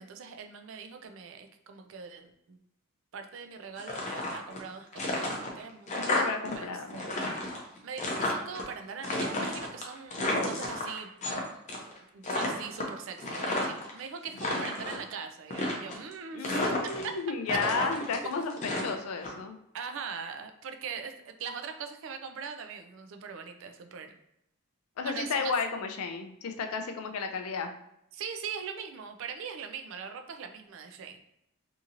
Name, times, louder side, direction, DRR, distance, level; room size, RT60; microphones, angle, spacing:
voice 1, 0.0-2.6 3.1-5.9 6.5-7.3 7.8-11.1 11.8-17.1 17.5-17.6 19.7-24.1 25.0-25.5 28.1-31.2, right 6 dB, 60° right, 6 dB, 0.3 m, -41 dB
sound 1, 3.8-4.6 4.9-6.5 6.8-8.6 9.0-11.4 11.7-12.0 12.2-13.9 14.3-15.0 15.5-16.1 16.4-17.2 17.5-19.3, left 2 dB, 35° left, 0.5 m, -32 dB
voice 2, 6.0-7.0 16.3-19.6 25.0-27.7, left 4 dB, 85° left, 6 dB, 0.4 m, -33 dB
2.8 x 2.7 x 2.5 m, 0.81 s
head